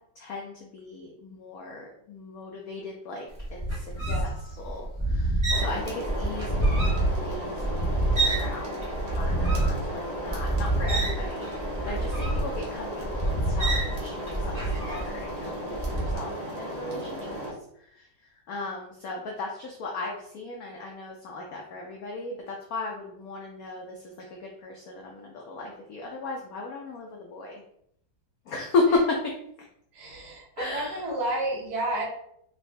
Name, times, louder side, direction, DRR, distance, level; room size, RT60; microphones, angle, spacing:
voice 1, 0.2-4.1 4.6-8.8 9.1-11.5 11.8-17.4 17.9-18.1 18.5-27.6 28.5-29.3 30.6-31.0, left 3 dB, 75° left, 0 dB, 0.8 m, -35 dB
sound 1, 3.4-8.5 8.8-15.3 15.7-16.2, right 2 dB, 20° right, 1.1 m, -27 dB
voice 2, 4.0-4.6 29.9-32.1, right 1 dB, 60° right, -3 dB, 1.7 m, -31 dB
Forge - Coal burning with fan on close, 5.5-17.5, equal, 75° right, 1.9 m, -35 dB
3.9 x 2.6 x 3.2 m, 0.70 s
omnidirectional pair, 2.2 m